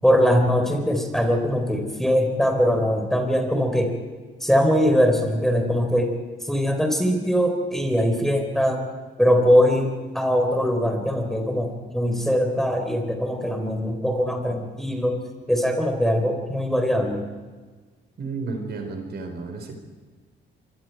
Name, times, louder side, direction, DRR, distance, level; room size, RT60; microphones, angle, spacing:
voice 1, 0.0-3.9 4.4-6.1 6.4-8.8 9.2-15.2 15.5-17.2, equal, ahead, 4 dB, 4.2 m, -21 dB
voice 2, 18.2-19.7, right 4 dB, 55° right, 4 dB, 4.7 m, -32 dB
26.0 x 23.5 x 4.7 m, 1.4 s
cardioid pair, 90°, 20 cm